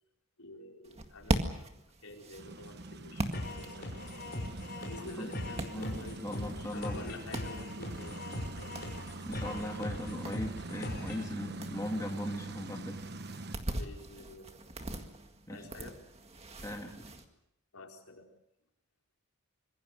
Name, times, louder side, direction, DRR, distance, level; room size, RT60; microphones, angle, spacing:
voice 1, 0.4-1.7 2.0-4.1 4.9-8.9 11.4-11.6 13.7-14.7 15.5-16.0 17.7-18.3, left 2 dB, 80° left, 1 dB, 4.5 m, -49 dB
sound 1, 0.8-17.2, right 1 dB, 30° right, 1.9 m, -41 dB
sound 2, 2.4-13.6, right 2 dB, 45° right, 1.2 m, -44 dB
sound 3, 3.3-11.3, left 1 dB, 45° left, 5.8 m, -41 dB
voice 2, 5.7-7.1 9.3-13.0 15.5-15.7 16.6-17.1, equal, 15° left, 2 dB, 2.0 m, -39 dB
26.0 x 22.5 x 6.6 m, 0.81 s
head